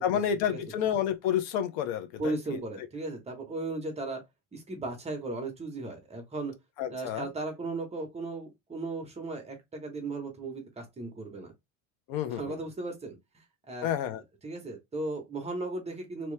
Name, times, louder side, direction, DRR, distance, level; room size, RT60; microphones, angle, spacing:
voice 1, 0.0-2.6 6.8-7.3 12.1-12.6 13.8-14.2, left 9 dB, 75° left, 0.9 m, -30 dB
voice 2, 2.2-4.2 4.5-6.5 6.9-11.5 12.3-13.1 13.7-14.0 14.4-16.3, right 2 dB, 15° right, 1.0 m, -36 dB
3.0 x 3.0 x 3.2 m
cardioid pair, 150°, 42 cm